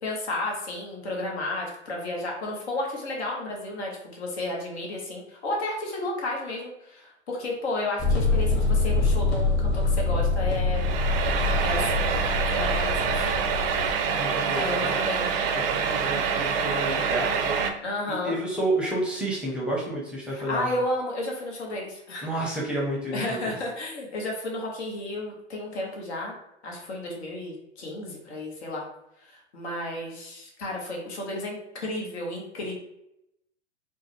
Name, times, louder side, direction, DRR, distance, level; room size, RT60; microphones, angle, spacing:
voice 1, 0.0-10.8 11.6-13.9 14.5-15.3 17.8-18.3 20.2-22.3 23.1-26.4 26.6-28.8 29.2-32.7, left 1 dB, 65° left, -1 dB, 1.1 m, -32 dB
sound 1, 8.0-13.9, left 3 dB, 30° left, 1.4 m, -25 dB
sound 2, 10.7-17.7, right 6 dB, 50° right, 0.5 m, -26 dB
voice 2, 14.0-15.0 15.5-17.7 18.2-20.7 22.2-23.5, right 1 dB, 5° right, -4 dB, 0.7 m, -30 dB
3.6 x 2.1 x 3.1 m, 0.83 s
figure-of-eight pair, 95°, 35 cm